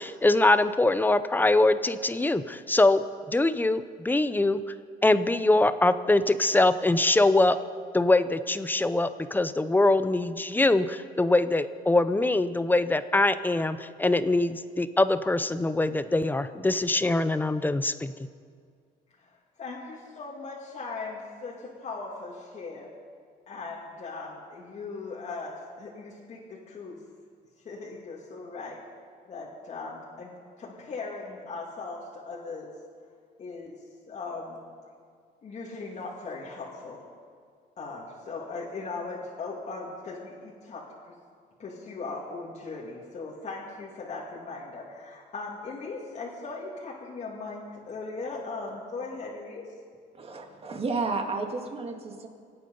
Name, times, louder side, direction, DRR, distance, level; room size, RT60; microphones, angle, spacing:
voice 1, 0.0-4.6 5.0-7.6 7.9-18.1, left 2 dB, 10° left, 13 dB, 0.6 m, -23 dB
voice 2, 19.6-22.9 23.5-27.0 27.6-28.8 29.3-30.3 30.6-32.7 33.4-34.6 35.4-37.0 37.8-41.1 41.6-49.6, left 3 dB, 40° left, -4 dB, 2.5 m, -38 dB
voice 3, 50.1-52.3, right 3 dB, 35° right, 3 dB, 2.1 m, -32 dB
26.0 x 8.9 x 5.4 m, 2.1 s
cardioid pair, 110°, 17 cm